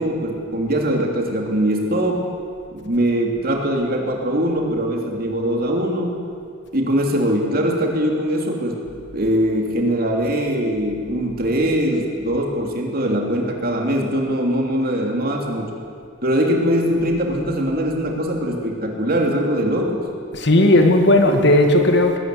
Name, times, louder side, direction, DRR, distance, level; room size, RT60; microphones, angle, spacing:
voice 1, 0.0-2.3 2.7-6.2 6.7-8.8 9.1-15.7 16.2-20.0, equal, 50° right, 1 dB, 3.1 m, -21 dB
voice 2, 20.3-22.2, left 1 dB, 60° left, 4 dB, 2.2 m, -15 dB
20.5 x 13.5 x 9.6 m, 2.3 s
head